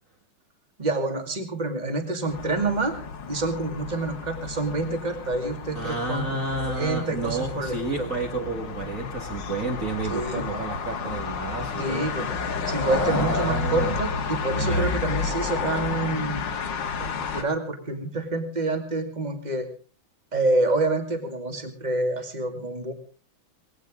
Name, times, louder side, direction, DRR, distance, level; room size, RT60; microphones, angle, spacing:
voice 1, 0.8-3.0 3.3-6.4 6.7-8.1 10.1-10.6 11.8-12.3 12.7-16.5 17.0-19.7 20.3-22.9, right 2 dB, 20° right, 5 dB, 2.4 m, -27 dB
sound 1, 2.3-17.4, left 5 dB, 60° left, 2.0 m, -31 dB
voice 2, 5.7-12.1 12.9-14.0 14.6-14.9, right 3 dB, 40° right, 1 dB, 2.1 m, -31 dB
19.5 x 17.5 x 3.8 m, 0.37 s
omnidirectional pair, 2.3 m